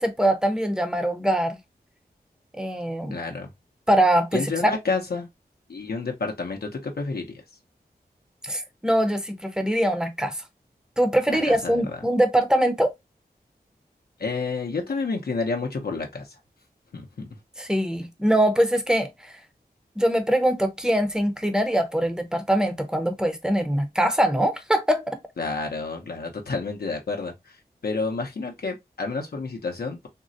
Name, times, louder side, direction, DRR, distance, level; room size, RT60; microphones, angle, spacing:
voice 1, 0.0-1.6 2.6-3.2 3.9-4.7 8.4-10.4 11.0-12.9 17.6-19.3 20.0-25.2, right 1 dB, 5° right, 0.6 m, -23 dB
voice 2, 3.1-3.5 4.3-5.3 5.7-7.4 11.3-11.8 14.2-16.3 16.9-17.3 25.4-27.6 27.8-30.1, left 4 dB, 70° left, 0.6 m, -29 dB
3.6 x 2.0 x 2.5 m
wide cardioid pair, 75°, 17 cm